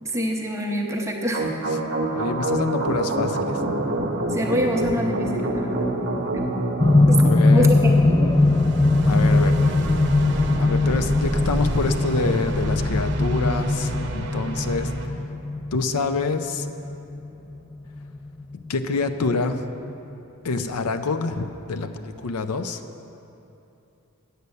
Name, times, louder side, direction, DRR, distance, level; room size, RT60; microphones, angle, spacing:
voice 1, 0.0-1.5 4.3-5.9 6.3-6.5 7.1-7.8 8.0-8.3, equal, 15° right, 0 dB, 0.7 m, -26 dB
sound 1, 1.3-15.1, right 1 dB, 50° right, 0.8 m, -28 dB
voice 2, 2.1-3.6 7.2-7.7 9.1-9.6 10.6-15.1 15.7-16.7 18.7-19.7 20.4-22.8, left 4 dB, 85° left, 9 dB, 0.5 m, -26 dB
sound 2, 6.8-18.9 19.9-20.0, left 2 dB, 20° left, 0.3 m, -21 dB
8.2 x 8.1 x 6.5 m, 2.9 s
head